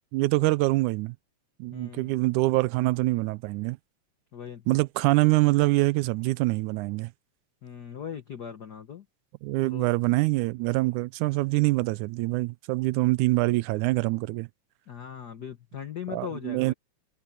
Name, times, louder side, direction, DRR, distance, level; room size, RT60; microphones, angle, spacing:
voice 1, 0.1-1.2 1.6-3.8 4.7-7.1 9.4-14.5 16.1-16.7, right 21 dB, 80° right, 2.0 m, -25 dB
voice 2, 1.7-2.2 4.3-4.8 7.6-9.0 9.6-9.9 14.9-16.7, left 8 dB, 75° left, 0.9 m, -39 dB
omnidirectional pair, 3.6 m